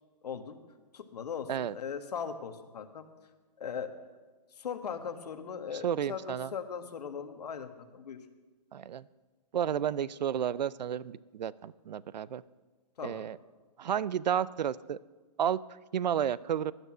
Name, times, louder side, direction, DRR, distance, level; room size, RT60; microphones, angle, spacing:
voice 1, 0.2-0.6 0.9-3.0 3.6-3.9 4.6-8.2 13.0-13.3, left 7 dB, 70° left, 7 dB, 1.6 m, -39 dB
voice 2, 5.7-6.5 8.7-9.1 9.5-12.4 13.0-13.4 13.8-15.0 15.4-15.6 15.9-16.7, right 9 dB, 85° right, 20 dB, 0.6 m, -31 dB
16.5 x 11.0 x 6.2 m, 1.3 s
hypercardioid pair, 170°, 21 cm